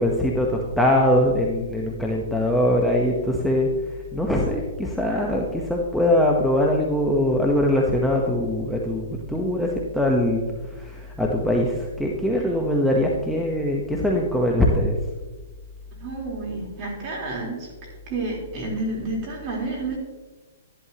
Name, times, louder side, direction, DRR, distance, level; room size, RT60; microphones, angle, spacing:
voice 1, 0.0-10.4 10.7-15.0, left 1 dB, ahead, -2 dB, 0.9 m, -22 dB
voice 2, 16.0-20.0, right 2 dB, 35° right, -2 dB, 3.7 m, -30 dB
12.5 x 11.0 x 2.9 m, 1.2 s
hypercardioid pair, 150°, 0 cm